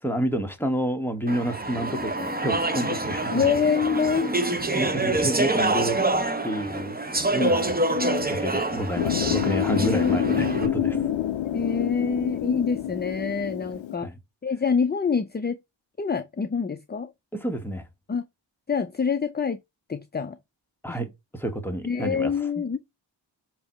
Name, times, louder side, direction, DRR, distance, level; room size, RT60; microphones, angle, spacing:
voice 1, 0.0-3.5 4.4-6.0 6.4-7.8 8.1-11.0 14.0-14.2 17.3-17.9 20.8-21.1 21.3-22.3, right 1 dB, 5° left, 1.4 m, -29 dB
Speech / Chatter, 1.3-10.7, right 2 dB, 20° right, 0.9 m, -26 dB
voice 2, 3.3-4.3 7.4-8.3 9.7-14.1 14.4-15.6 16.0-17.1 18.1-18.2 18.7-19.6 19.9-20.4 20.9-21.0 21.8-22.8, left 6 dB, 20° left, 0.5 m, -26 dB
sound 1, 9.0-14.0, left 11 dB, 80° left, 0.6 m, -28 dB
6.9 x 3.0 x 5.4 m
wide cardioid pair, 70°, 45 cm